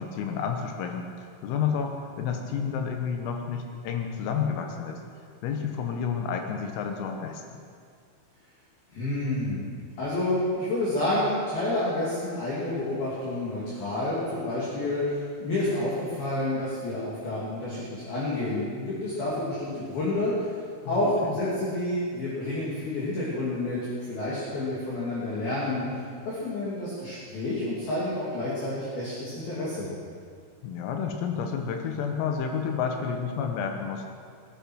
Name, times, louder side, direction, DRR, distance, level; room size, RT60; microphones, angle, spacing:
voice 1, 0.0-5.0 5.4-7.6 20.9-21.6 30.6-34.0, left 6 dB, 80° left, 3 dB, 3.7 m, -30 dB
voice 2, 8.9-9.7 10.0-20.5 20.9-23.8 24.1-25.8 26.3-29.9, left 1 dB, 50° left, -8 dB, 4.2 m, -29 dB
21.5 x 10.5 x 6.2 m, 2.1 s
omnidirectional pair, 5.9 m